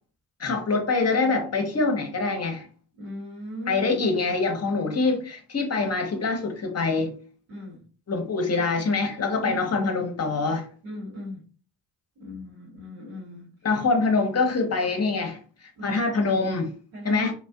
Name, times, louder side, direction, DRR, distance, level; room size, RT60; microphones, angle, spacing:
voice 1, 0.4-2.7 3.7-7.1 8.1-10.7 13.6-15.4 15.8-16.7 17.0-17.3, left 3 dB, 35° left, 0.8 m, -24 dB
voice 2, 3.0-3.9 7.5-7.8 9.4-9.5 10.8-11.4 12.2-13.5 15.8-16.0 16.9-17.3, equal, 80° right, 1.1 m, -37 dB
2.4 x 2.2 x 2.3 m
hypercardioid pair, 40°, 46 cm